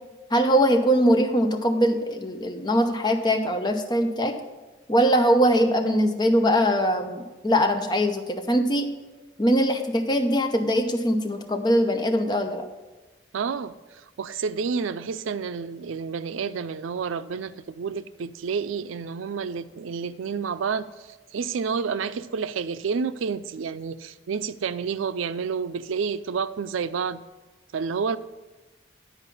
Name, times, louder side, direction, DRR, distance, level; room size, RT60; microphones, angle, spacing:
voice 1, 0.3-4.3 4.9-8.9 9.4-12.6, equal, 20° left, 5 dB, 0.7 m, -22 dB
voice 2, 13.3-27.2 27.7-28.2, right 5 dB, 90° right, 14 dB, 0.4 m, -29 dB
10.0 x 4.8 x 6.9 m, 1.2 s
head